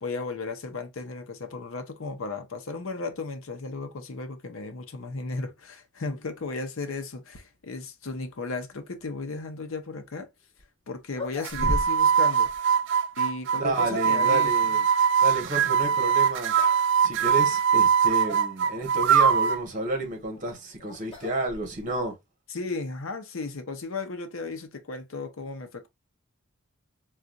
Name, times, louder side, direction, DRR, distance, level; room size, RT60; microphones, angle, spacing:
voice 1, 0.0-10.3 10.9-12.5 13.2-14.5 22.5-25.9, left 3 dB, 70° left, 0.7 m, -35 dB
sound 1, 10.6-10.7 11.1-12.2 12.4-12.6 13.4-14.2 16.0-16.2 16.5-16.9 17.2-17.3 18.0-18.1 19.9-22.0, left 1 dB, 25° left, 1.1 m, -35 dB
sound 2, 11.4-19.6, right 7 dB, 60° right, 0.3 m, -22 dB
voice 2, 13.5-14.9 15.2-16.5 17.0-22.1, right 1 dB, 35° right, 1.1 m, -31 dB
3.9 x 2.4 x 2.3 m
head